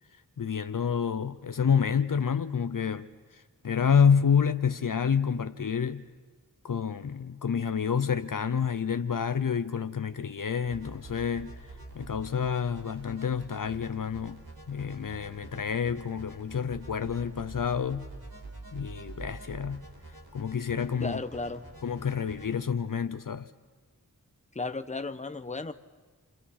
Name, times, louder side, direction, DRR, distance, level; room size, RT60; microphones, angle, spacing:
voice 1, 0.4-3.1 3.3-6.0 6.6-11.5 12.0-14.4 14.7-18.1 18.7-19.8 20.3-21.2 21.8-23.5, left 7 dB, 60° left, 0.7 m, -28 dB
sound 1, 10.6-22.6, right 2 dB, 75° right, 4.7 m, -46 dB
voice 2, 21.0-21.6 24.5-25.7, left 3 dB, 20° left, 1.0 m, -34 dB
30.0 x 26.5 x 4.3 m
wide cardioid pair, 50°, 37 cm